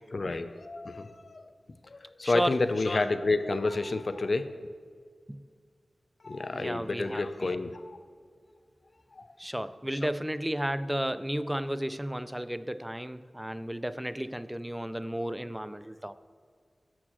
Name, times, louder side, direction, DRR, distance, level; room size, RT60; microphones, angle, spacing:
voice 1, 0.1-1.5 1.9-4.5 6.2-8.0 9.2-9.3, left 3 dB, 60° left, 10 dB, 0.6 m, -29 dB
voice 2, 2.2-2.6 5.3-5.4 6.5-7.2 9.4-16.1, equal, 10° right, 13 dB, 0.5 m, -33 dB
16.0 x 6.1 x 3.1 m, 2.1 s
cardioid pair, 45°, 0 cm